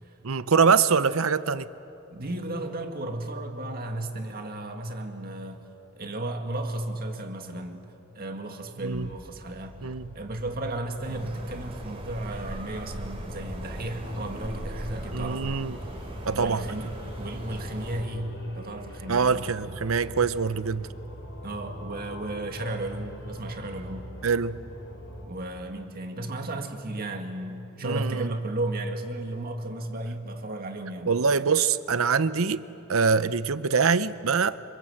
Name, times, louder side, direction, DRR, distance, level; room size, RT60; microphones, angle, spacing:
voice 1, 0.2-1.7 8.8-9.1 9.8-10.1 15.1-15.8 16.3-16.7 19.1-20.9 24.2-24.6 27.8-28.3 31.1-32.6 32.9-34.6, right 5 dB, 85° right, 0.8 m, -24 dB
voice 2, 2.1-5.7 6.0-9.8 10.1-15.6 16.3-19.5 21.4-24.1 25.2-31.1, right 1 dB, 45° right, 2.0 m, -34 dB
sound 1, 8.9-25.3, equal, 65° left, 5.5 m, -43 dB
sound 2, 11.0-18.0, equal, 30° right, 3.0 m, -39 dB
26.5 x 26.0 x 7.9 m
head